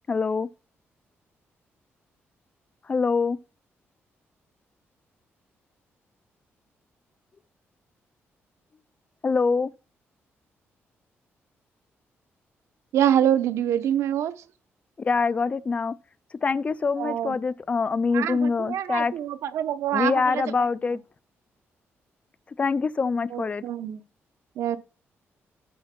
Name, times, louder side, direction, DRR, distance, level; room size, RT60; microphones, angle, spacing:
voice 1, 0.1-0.5 2.9-3.4 9.2-9.7 15.0-15.9 16.4-19.1 19.9-21.0 22.6-23.6, left 4 dB, 30° left, 0.3 m, -24 dB
voice 2, 12.9-14.4 17.0-17.4 18.1-20.7 23.3-24.0 24.6-24.8, right 10 dB, 85° right, 0.7 m, -25 dB
9.4 x 4.1 x 5.8 m
cardioid pair, 145°, 5 cm